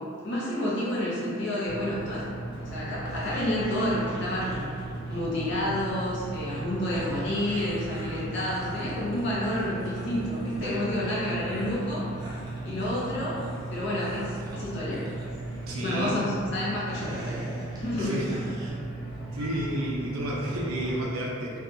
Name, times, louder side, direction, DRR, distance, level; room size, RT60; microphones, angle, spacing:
voice 1, 0.0-2.3 2.6-4.7 5.1-12.1 12.6-13.4 13.7-15.0 15.8-17.4 17.7-18.2, left 1 dB, 55° left, -7 dB, 0.7 m, -29 dB
sound 1, 1.6-21.0, right 2 dB, 20° left, 1.0 m, -37 dB
sound 2, 3.1-5.3 5.5-16.2 16.6-18.7, equal, 20° right, 0.4 m, -45 dB
voice 2, 15.7-16.2 18.0-18.3 19.3-21.5, right 1 dB, 75° right, -4 dB, 0.5 m, -31 dB
2.6 x 2.3 x 2.5 m, 2.3 s
head